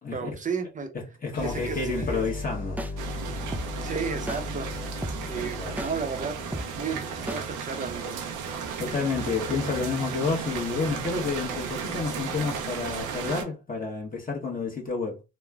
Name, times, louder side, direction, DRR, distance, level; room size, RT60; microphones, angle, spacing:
voice 1, 0.1-0.9 1.4-2.2 3.8-4.7 5.3-6.4 6.7-8.2, right 5 dB, 25° right, 0.7 m, -33 dB
voice 2, 0.9-2.8 5.3-5.8 8.8-15.2, left 4 dB, 30° left, 1.1 m, -30 dB
sound 1, 1.3-7.5, left 2 dB, 55° left, 1.0 m, -37 dB
sound 2, 2.0-2.2 2.8-2.9 3.5-3.7 4.3-4.4 5.0-5.2 5.8-5.9 6.5-6.7 7.3-7.4, right 1 dB, 5° right, 0.3 m, -32 dB
sound 3, 3.0-13.4, right 6 dB, 85° right, 0.6 m, -34 dB
3.1 x 2.1 x 2.3 m
cardioid pair, 90°, 30 cm